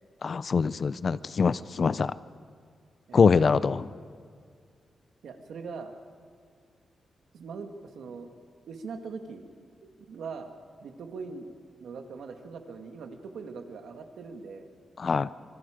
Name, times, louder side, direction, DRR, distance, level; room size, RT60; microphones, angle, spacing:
voice 1, 0.2-2.1 3.1-3.9 15.0-15.3, left 5 dB, 40° left, 16 dB, 0.5 m, -24 dB
voice 2, 3.1-3.7 5.2-5.9 7.3-8.3 8.7-9.4 9.8-10.5 10.8-11.5 11.8-14.7, right 5 dB, 80° right, 5 dB, 1.9 m, -41 dB
26.0 x 23.0 x 5.1 m, 2.1 s
wide cardioid pair, 155°, 0 cm